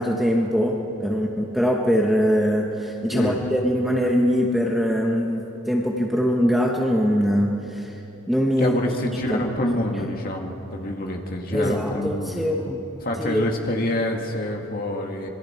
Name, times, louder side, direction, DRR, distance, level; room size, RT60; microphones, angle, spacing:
voice 1, 0.0-7.9 8.3-8.8 9.3-9.4 10.0-10.1 11.5-12.8 13.2-13.5, equal, ahead, -1 dB, 1.1 m, -22 dB
voice 2, 8.6-12.7 13.0-15.3, left 1 dB, 40° left, 1 dB, 2.1 m, -27 dB
26.0 x 22.5 x 4.5 m, 3.0 s
head